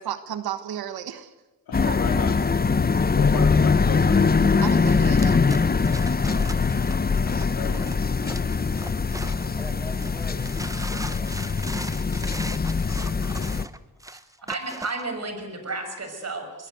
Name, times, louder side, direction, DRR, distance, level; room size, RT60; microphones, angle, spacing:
voice 1, 0.0-1.3 1.9-2.0 4.6-5.5, right 10 dB, 85° right, 11 dB, 1.5 m, -33 dB
voice 2, 1.7-2.4 3.2-4.7 7.5-8.9, left 6 dB, 80° left, 3 dB, 3.8 m, -35 dB
sound 1, 1.7-13.7, left 4 dB, 25° left, 0.9 m, -22 dB
sound 2, 5.2-9.6 10.0-15.1, right 1 dB, 10° right, 1.2 m, -39 dB
voice 3, 9.6-12.0 14.1-14.5, left 1 dB, 5° left, 0 dB, 4.2 m, -44 dB
voice 4, 14.1-16.7, right 3 dB, 45° right, 6 dB, 6.4 m, -33 dB
24.0 x 20.0 x 8.1 m, 1.1 s
cardioid pair, 85°, 36 cm